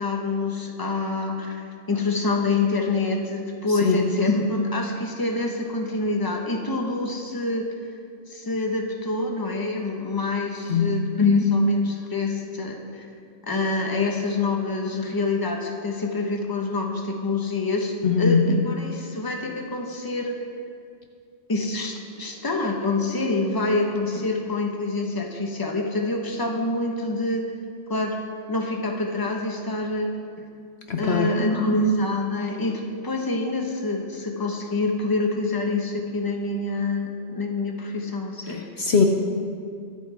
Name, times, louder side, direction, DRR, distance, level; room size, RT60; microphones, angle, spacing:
voice 1, 0.0-7.7 8.3-13.0 13.5-20.4 21.5-27.4 27.9-28.2 28.5-30.1 31.0-38.6, left 2 dB, 15° left, 2 dB, 1.2 m, -26 dB
voice 2, 3.7-4.0 10.7-10.9 18.0-18.4 30.9-31.3 38.5-39.0, left 6 dB, 60° left, 3 dB, 1.1 m, -21 dB
24.0 x 9.0 x 3.5 m, 2.3 s
omnidirectional pair, 1.4 m